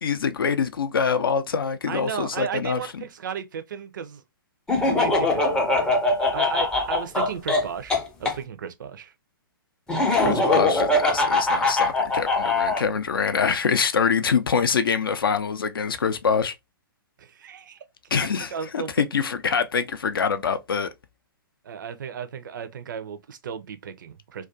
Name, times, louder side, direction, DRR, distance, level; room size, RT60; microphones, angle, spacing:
voice 1, 0.0-3.0 10.1-16.5 18.1-20.9, left 6 dB, 70° left, 0.4 m, -25 dB
voice 2, 1.9-4.2 4.8-5.9 6.3-9.1 10.2-10.8 17.2-17.8 18.2-19.0 21.6-24.5, right 7 dB, 60° right, 0.4 m, -34 dB
Laughter, 4.7-8.4 9.9-12.8, left 2 dB, 5° left, 0.4 m, -22 dB
2.3 x 2.2 x 2.4 m
figure-of-eight pair, 120°, 12 cm